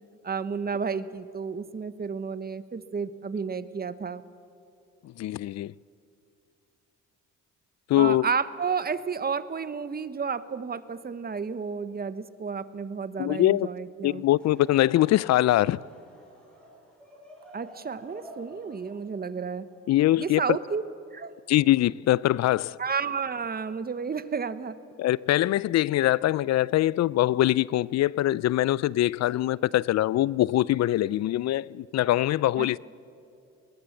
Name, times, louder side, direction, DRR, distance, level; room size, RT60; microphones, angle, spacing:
voice 1, 0.2-4.2 8.0-14.2 17.5-19.7 20.2-20.8 21.1-21.3 22.8-24.8 32.6-32.7, right 5 dB, 30° right, 0.9 m, -31 dB
voice 2, 5.0-5.7 7.9-8.3 13.2-13.7 14.0-15.9 19.9-20.6 21.5-22.8 25.0-32.8, left 14 dB, 60° left, 0.4 m, -23 dB
Laughter / Crowd, 14.2-20.6, equal, 5° left, 6.6 m, -51 dB
21.0 x 19.5 x 7.2 m
cardioid pair, 90°, 30 cm